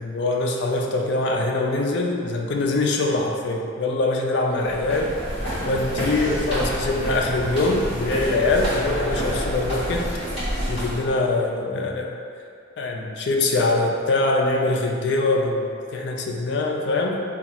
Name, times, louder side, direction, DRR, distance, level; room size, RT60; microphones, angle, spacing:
voice 1, 0.0-5.2 5.6-10.0 10.7-12.1 12.8-17.2, left 2 dB, 60° left, 1 dB, 0.4 m, -23 dB
sound 1, 4.6-11.1, equal, 30° left, 1.3 m, -28 dB
2.9 x 2.3 x 4.2 m, 2.3 s
head